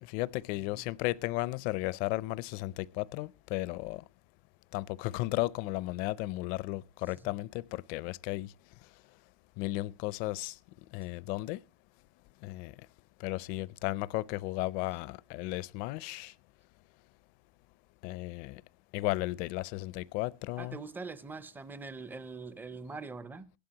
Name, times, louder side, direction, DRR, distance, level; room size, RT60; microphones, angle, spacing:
voice 1, 0.0-4.0 4.7-8.5 9.6-10.6 10.9-11.6 12.4-12.7 13.2-16.3 18.0-18.6 18.9-20.8, left 19 dB, 50° left, 0.5 m, -34 dB
voice 2, 20.6-23.5, right 4 dB, 10° right, 0.5 m, -43 dB
16.5 x 11.5 x 2.9 m
supercardioid pair, 130°, 20 cm